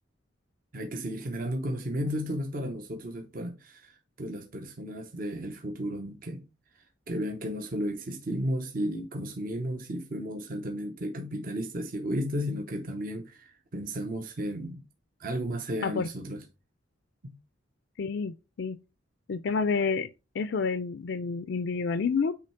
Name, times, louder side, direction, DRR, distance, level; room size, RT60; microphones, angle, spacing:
voice 1, 0.7-6.4 6.7-14.8 15.2-16.4 17.2-17.4, equal, 45° right, 0.8 m, -34 dB
voice 2, 18.0-18.8 19.3-20.1 20.3-22.3, left 5 dB, 60° left, 0.4 m, -29 dB
8.5 x 3.1 x 4.3 m
head